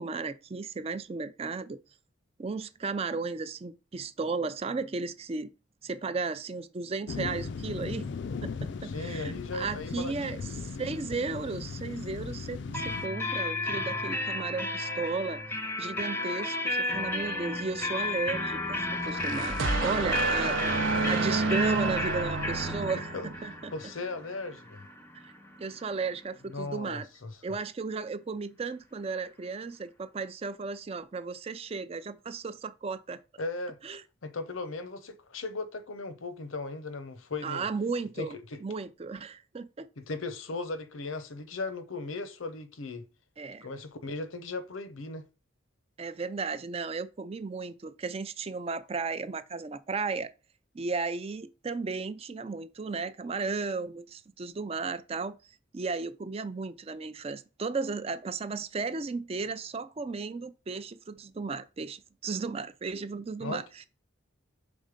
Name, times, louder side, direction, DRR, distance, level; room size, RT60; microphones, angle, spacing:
voice 1, 0.0-1.8 2.4-5.5 5.8-8.1 8.4-23.1 23.4-23.7 25.2-25.3 25.6-27.1 27.4-33.2 33.8-34.0 37.4-38.3 38.6-39.9 43.4-43.7 46.0-50.3 50.7-55.3 55.7-63.9, right 4 dB, 30° right, 0.4 m, -35 dB
sound 1, 7.1-13.1, left 4 dB, 60° left, 0.4 m, -37 dB
voice 2, 8.8-10.4 23.1-24.8 26.5-27.4 33.4-33.8 34.2-37.7 38.2-38.6 40.0-43.1 43.6-45.3 63.4-63.6, left 3 dB, 85° left, 0.8 m, -37 dB
sound 2, 12.7-26.3, left 2 dB, 10° left, 0.6 m, -33 dB
sound 3, 18.9-23.5, right 3 dB, 75° right, 0.7 m, -30 dB
5.3 x 3.6 x 5.1 m
head